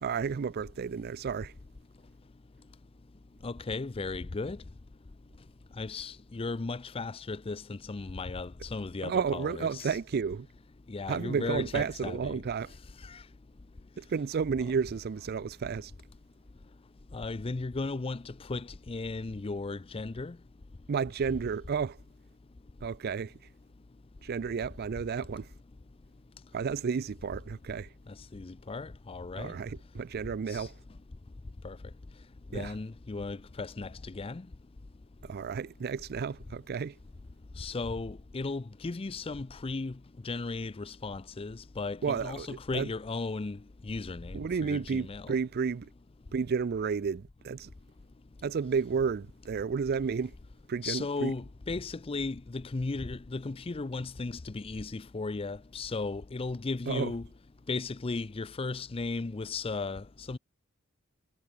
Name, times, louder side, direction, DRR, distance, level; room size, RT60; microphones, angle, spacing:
voice 1, 0.0-1.5 9.0-10.5 11.1-12.7 14.0-15.9 20.9-22.0 22.8-23.3 24.2-25.5 26.5-27.9 29.4-30.7 32.5-32.7 35.2-36.9 42.0-42.9 44.3-45.9 46.3-47.7 48.4-50.3 50.7-51.3 56.9-57.1, right 6 dB, 45° right, 0.4 m, -32 dB
voice 2, 3.4-4.6 5.8-10.0 10.9-12.4 13.0-13.2 17.1-20.4 28.2-29.5 30.5-30.7 31.6-31.8 32.5-34.4 37.6-39.9 40.2-43.6 43.9-45.4 50.8-57.2 57.7-60.4, left 3 dB, 25° left, 0.5 m, -36 dB
head